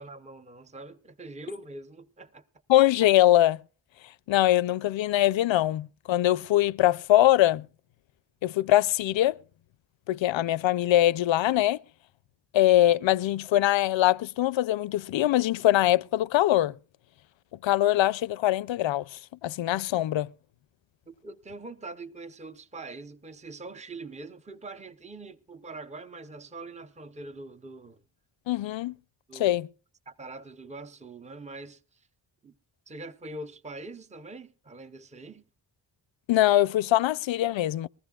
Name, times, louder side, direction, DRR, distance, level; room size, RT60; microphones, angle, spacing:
voice 1, 0.0-2.4 21.1-28.0 29.3-29.5 30.1-32.1 32.4-32.5 32.9-35.4, right 2 dB, 15° right, 0.7 m, -43 dB
voice 2, 2.7-3.6 4.3-7.7 8.4-9.4 10.1-11.8 12.5-16.7 17.6-20.3 28.5-28.9 29.3-29.7 36.3-37.9, left 14 dB, 80° left, 0.5 m, -23 dB
22.0 x 14.5 x 2.3 m
wide cardioid pair, 125°, 45 cm